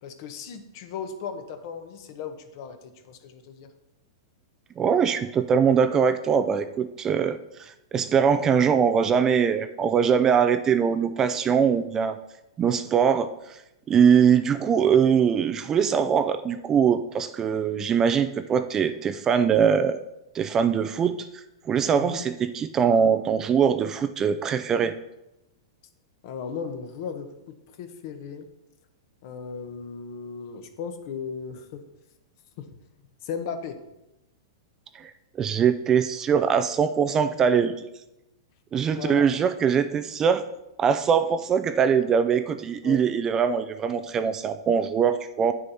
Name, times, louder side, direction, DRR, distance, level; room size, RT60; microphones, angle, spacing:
voice 1, 0.0-3.7 21.9-22.2 26.2-28.5 29.2-31.8 32.6-32.7 33.2-33.8 38.9-39.3 42.8-43.1, left 6 dB, 50° left, 7 dB, 1.1 m, -36 dB
voice 2, 4.8-12.2 12.6-13.6 13.9-20.0 20.3-21.3 21.7-24.9 34.9-35.1 35.4-37.9 38.7-40.4 40.8-45.5, right 7 dB, 20° right, 11 dB, 0.4 m, -22 dB
9.0 x 6.3 x 4.2 m, 0.92 s
hypercardioid pair, 135°, 2 cm